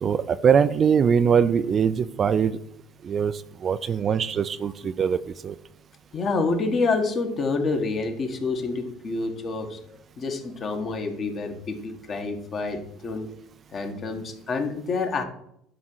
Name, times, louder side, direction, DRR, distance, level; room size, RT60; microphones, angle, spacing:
voice 1, 0.0-2.6 3.0-5.5, right 7 dB, 40° right, 13 dB, 0.4 m, -22 dB
voice 2, 6.1-9.8 10.2-13.3 13.7-15.2, left 3 dB, 40° left, 4 dB, 1.7 m, -27 dB
11.0 x 3.7 x 6.3 m, 0.73 s
supercardioid pair, 100°, 0 cm